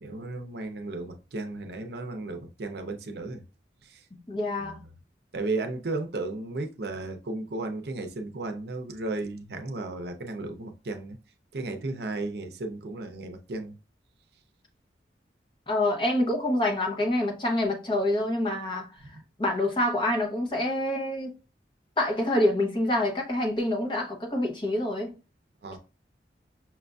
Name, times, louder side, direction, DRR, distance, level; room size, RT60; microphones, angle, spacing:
voice 1, 0.0-3.4 3.8-4.0 4.6-4.8 5.3-11.2 11.5-13.8 19.1-19.2 25.6-25.8, right 2 dB, 65° right, 0.6 m, -34 dB
voice 2, 4.3-4.8 15.7-18.9 19.4-21.3 22.0-25.1, left 1 dB, 25° left, 0.8 m, -26 dB
5.9 x 2.5 x 2.3 m
head